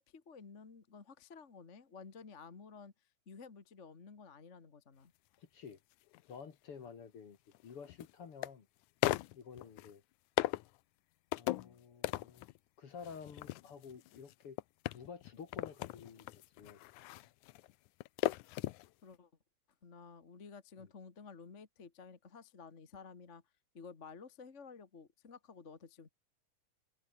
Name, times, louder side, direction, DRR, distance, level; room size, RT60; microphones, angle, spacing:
voice 1, 0.0-2.9 3.2-5.1 19.0-19.3 19.8-23.4 23.7-26.1, left 5 dB, 30° left, 1.8 m, -53 dB
voice 2, 5.4-5.8 6.3-7.4 7.6-8.7 9.3-10.0 11.3-12.5 12.8-14.6 14.9-16.8 20.8-20.9, left 6 dB, 50° left, 2.7 m, -51 dB
sound 1, 6.1-6.2 7.5-8.5 9.0-9.9 10.4-10.8 11.3-11.7 12.0-12.6 13.0-18.9 19.1-19.2, left 18 dB, 85° left, 2.1 m, -38 dB
omnidirectional pair, 3.4 m